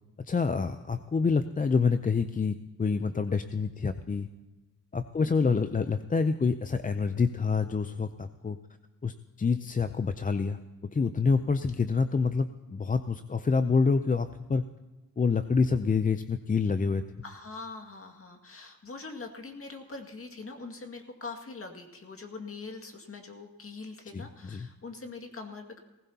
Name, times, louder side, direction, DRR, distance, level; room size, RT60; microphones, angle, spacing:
voice 1, 0.2-4.3 4.9-8.6 9.0-14.6 15.2-17.0 24.1-24.7, left 4 dB, 25° left, 9 dB, 0.5 m, -27 dB
voice 2, 5.2-5.6 17.2-25.8, left 3 dB, 40° left, 4 dB, 2.1 m, -43 dB
19.0 x 16.0 x 2.9 m, 1.1 s
cardioid pair, 75°, 35 cm